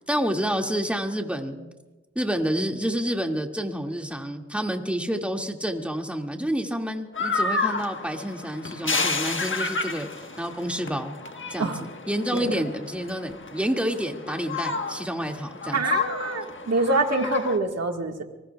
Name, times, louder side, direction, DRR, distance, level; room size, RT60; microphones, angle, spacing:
voice 1, 0.1-1.7 2.2-11.2 11.5-11.7 12.1-15.8, equal, 5° right, 2 dB, 2.1 m, -29 dB
sound 1, 7.1-17.6, left 4 dB, 45° left, 1.3 m, -31 dB
voice 2, 12.3-12.6 15.7-18.2, right 3 dB, 60° right, 3 dB, 1.7 m, -25 dB
24.5 x 20.0 x 2.3 m, 1.1 s
cardioid pair, 40°, 29 cm